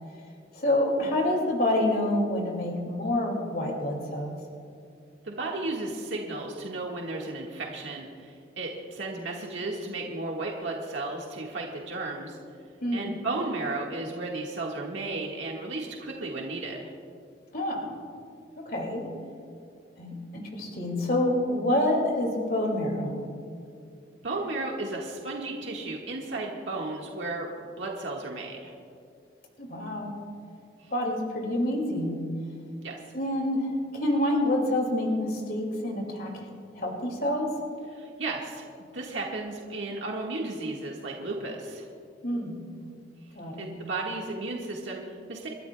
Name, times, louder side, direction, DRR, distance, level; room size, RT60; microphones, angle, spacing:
voice 1, 0.5-4.4 12.8-13.1 17.5-17.9 18.7-19.0 20.0-23.2 29.6-30.1 30.9-32.2 33.1-36.3 36.8-37.5 42.2-42.6 43.3-43.7, left 1 dB, 55° left, 1 dB, 2.3 m, -27 dB
voice 2, 5.2-12.4 12.9-16.9 24.2-28.7 30.8-30.9 32.8-33.0 37.9-41.9 43.6-45.5, right 2 dB, 90° right, -2 dB, 1.6 m, -34 dB
29.0 x 13.0 x 2.3 m, 2.4 s
head